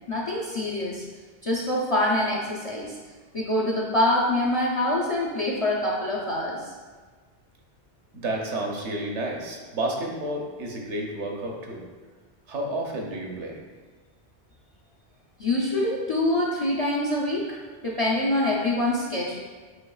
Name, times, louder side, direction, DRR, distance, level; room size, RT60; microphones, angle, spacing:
voice 1, 0.1-1.1 1.4-3.0 3.3-6.7 15.4-17.6 17.8-19.4, left 1 dB, 40° left, -4 dB, 0.4 m, -25 dB
voice 2, 8.1-11.8 12.5-13.6, right 1 dB, 85° right, 0 dB, 1.1 m, -31 dB
7.6 x 3.0 x 2.3 m, 1.4 s
omnidirectional pair, 1.2 m